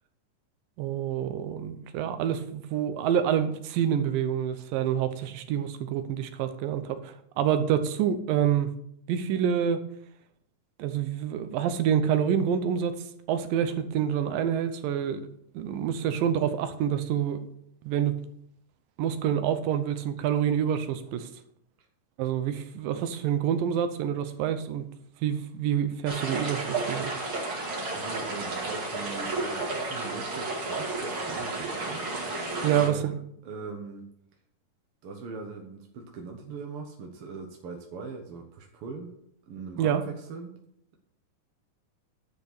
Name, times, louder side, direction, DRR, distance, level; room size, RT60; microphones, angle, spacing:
voice 1, 0.8-8.7 9.1-9.8 10.8-15.2 15.5-17.4 17.8-18.2 19.0-21.3 22.2-24.9 25.2-27.1 32.6-33.1 39.8-40.0, right 9 dB, 85° right, 9 dB, 2.5 m, -27 dB
sound 1, 26.1-32.9, right 2 dB, 40° right, 2.6 m, -32 dB
voice 2, 27.9-32.1 32.7-33.1 33.4-34.1 35.0-39.1 39.5-40.6, right 4 dB, 60° right, 2 dB, 1.5 m, -41 dB
10.5 x 5.3 x 6.6 m, 0.70 s
omnidirectional pair, 3.9 m